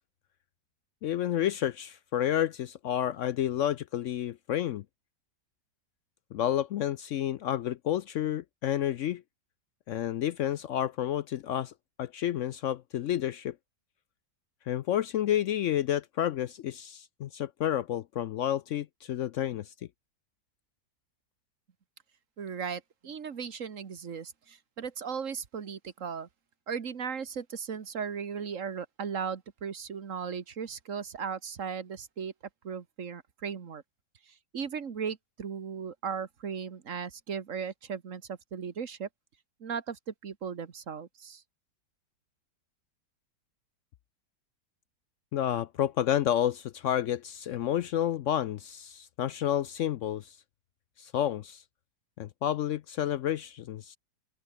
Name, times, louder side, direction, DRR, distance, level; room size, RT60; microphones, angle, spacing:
voice 1, 1.0-4.8 6.3-9.2 9.9-11.7 12.0-13.5 14.7-19.7 45.3-50.4 51.0-51.6 52.2-54.0, left 11 dB, 75° left, 0.7 m, -30 dB
voice 2, 22.4-26.3 26.7-32.3 32.6-33.8 34.3-39.1 39.6-41.4, right 6 dB, 50° right, 1.7 m, -37 dB
open air
omnidirectional pair, 1.8 m